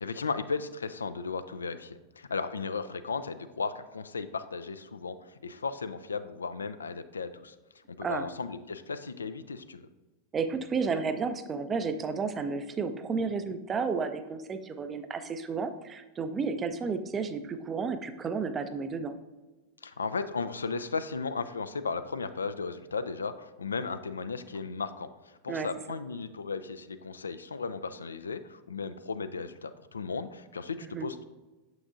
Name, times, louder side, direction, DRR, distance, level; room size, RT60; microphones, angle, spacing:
voice 1, 0.0-7.6 8.0-9.9 19.8-31.2, left 4 dB, 75° left, 11 dB, 0.3 m, -35 dB
voice 2, 10.3-19.1 25.5-25.7 30.8-31.1, right 5 dB, 20° right, 9 dB, 0.5 m, -32 dB
6.9 x 6.0 x 2.5 m, 1.2 s
figure-of-eight pair, 90°, 0 cm